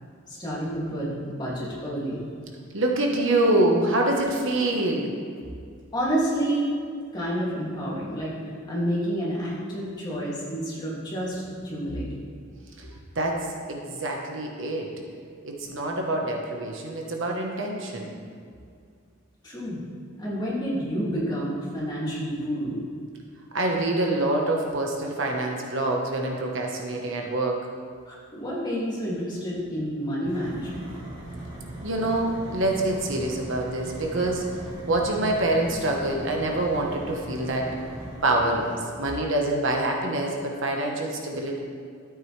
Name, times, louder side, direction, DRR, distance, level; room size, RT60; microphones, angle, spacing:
voice 1, 0.3-2.2 5.9-6.7 7.1-12.1 19.4-19.8 20.1-22.8 28.1-30.9, equal, 20° left, -7 dB, 2.4 m, -29 dB
voice 2, 2.7-5.1 12.8-12.9 13.1-13.4 13.7-14.9 15.4-18.1 23.5-27.6 31.8-34.4 34.9-37.7 38.2-38.7 39.0-41.6, right 1 dB, 60° right, 0 dB, 1.2 m, -25 dB
sound 1, 30.2-38.8, right 1 dB, 25° right, 2.1 m, -39 dB
12.5 x 8.6 x 3.3 m, 2.2 s
head